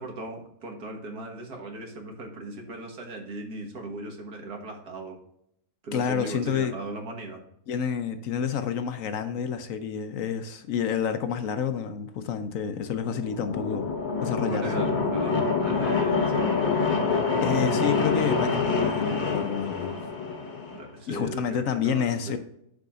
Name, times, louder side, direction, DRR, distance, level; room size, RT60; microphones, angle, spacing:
voice 1, 0.0-5.2 5.8-7.4 14.5-16.8 20.7-22.4, right 2 dB, 80° right, 2 dB, 2.0 m, -38 dB
voice 2, 5.9-6.7 7.7-13.9 14.2-14.8 17.4-20.0 21.1-22.4, left 7 dB, 65° left, 9 dB, 1.0 m, -29 dB
sound 1, 12.9-20.8, left 4 dB, 35° left, 1.0 m, -26 dB
11.5 x 4.9 x 2.4 m, 0.76 s
omnidirectional pair, 1.6 m